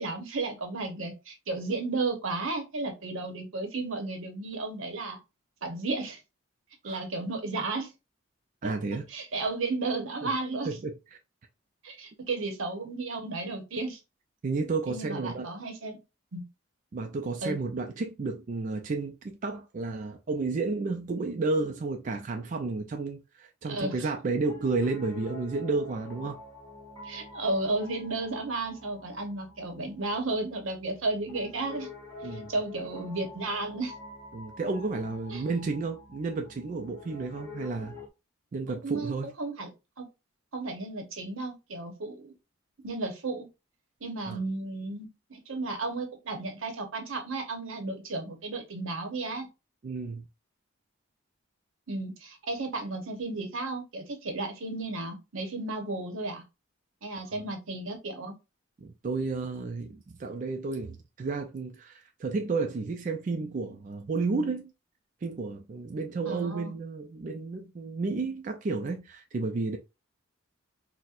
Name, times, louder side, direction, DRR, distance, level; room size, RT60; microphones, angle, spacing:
voice 1, 0.0-5.2 5.6-6.2 6.8-7.9 8.6-8.7 9.1-10.8 11.8-14.0 14.9-16.0 16.3-16.4 17.4-17.6 23.6-24.1 27.0-31.9 32.2-33.9 35.3-35.4 38.8-39.7 40.0-40.1 40.5-42.3 42.8-43.5 44.0-49.5 51.9-56.4 57.0-58.3 66.3-66.8, right 3 dB, 80° right, 0.8 m, -33 dB
voice 2, 8.6-9.1 10.2-10.3 10.7-10.9 14.4-15.5 16.9-26.4 32.2-32.5 34.3-37.9 38.5-39.3 44.3-44.4 49.8-50.2 57.3-57.4 58.8-64.7 65.2-69.8, right 3 dB, 40° right, 0.3 m, -32 dB
Piano, 24.4-38.1, left 2 dB, 15° left, 1.2 m, -47 dB
4.2 x 2.1 x 2.3 m
head